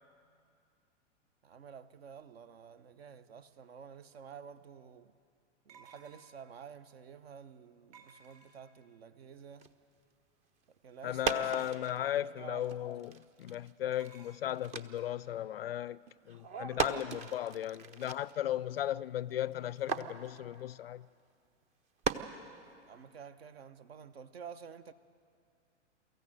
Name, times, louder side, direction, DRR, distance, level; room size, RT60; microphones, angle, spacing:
voice 1, 1.4-5.1 5.7-9.7 10.8-12.0 12.4-12.7 13.0-13.1 22.9-24.9, right 7 dB, 55° right, 0.9 m, -50 dB
sound 1, 4.1-4.2 5.7-6.5 7.9-8.8 11.3-12.0 13.9-14.4, right 5 dB, 35° right, 1.9 m, -58 dB
sound 2, 9.6-9.7 10.6-10.7 11.0-12.2 12.5-15.4 15.7-15.8 16.1-18.9 19.3-20.7 21.6-21.7 22.0-22.9, right 5 dB, 20° right, 0.6 m, -39 dB
voice 2, 11.0-16.0 16.3-21.1, left 12 dB, 55° left, 0.4 m, -36 dB
23.5 x 14.5 x 7.7 m
figure-of-eight pair, 105°, 36 cm